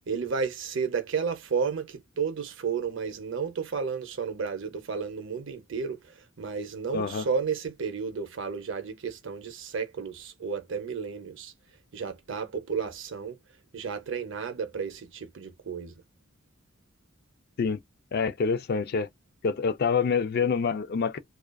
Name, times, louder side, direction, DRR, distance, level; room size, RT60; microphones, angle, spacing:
voice 1, 0.1-6.0 6.4-11.5 11.9-13.4 13.7-15.9, right 5 dB, 60° right, 0.6 m, -32 dB
voice 2, 6.9-7.3 17.6-17.8 18.1-19.1 19.4-21.2, left 5 dB, 45° left, 0.3 m, -26 dB
2.4 x 2.3 x 2.2 m
head